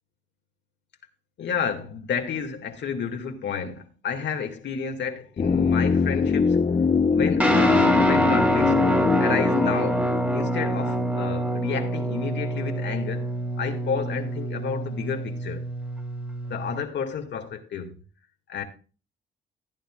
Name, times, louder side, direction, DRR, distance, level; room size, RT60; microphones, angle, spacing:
voice 1, 1.4-6.6 7.1-8.8 9.2-10.1 10.3-13.3 13.6-15.6 16.5-17.9 18.5-18.6, left 6 dB, 65° left, 2.1 m, -31 dB
sound 1, 5.4-11.4 11.6-11.7, left 5 dB, 35° left, 0.8 m, -23 dB
Guitar, 7.4-16.8, right 1 dB, 5° right, 1.9 m, -26 dB
16.5 x 9.5 x 2.4 m
cardioid pair, 90°, 20 cm